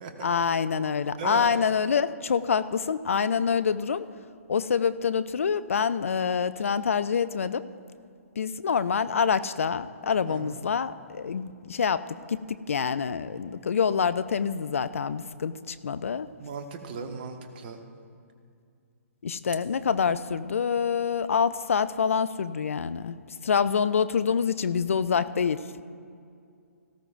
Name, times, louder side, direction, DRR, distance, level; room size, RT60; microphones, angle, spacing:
voice 1, 0.2-4.1 4.5-7.6 8.4-16.3 19.2-23.2 23.4-25.7, left 6 dB, 60° left, 14 dB, 0.5 m, -26 dB
voice 2, 1.2-1.5 10.3-10.6 16.4-17.8, right 5 dB, 40° right, 5 dB, 1.1 m, -37 dB
18.0 x 14.0 x 2.5 m, 2.4 s
figure-of-eight pair, 125°, 8 cm